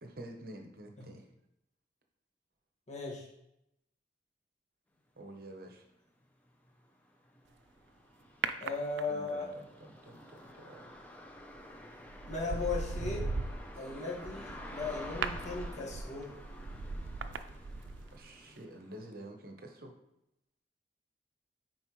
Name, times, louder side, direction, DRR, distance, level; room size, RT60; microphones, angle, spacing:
voice 1, 0.0-1.3 5.2-5.8 9.1-10.9 18.1-19.9, right 1 dB, 55° right, 3 dB, 0.9 m, -49 dB
voice 2, 2.9-3.3 8.6-9.5 12.3-13.2 13.8-16.3, left 4 dB, 40° left, -4 dB, 1.7 m, -37 dB
sound 1, 5.7-5.8 6.2-19.1, left 1 dB, 10° left, 0.6 m, -51 dB
sound 2, 8.4-9.5 11.3-11.6 12.1-18.3 18.6-18.7, right 4 dB, 90° right, 0.4 m, -39 dB
9.5 x 4.4 x 3.1 m, 0.83 s
head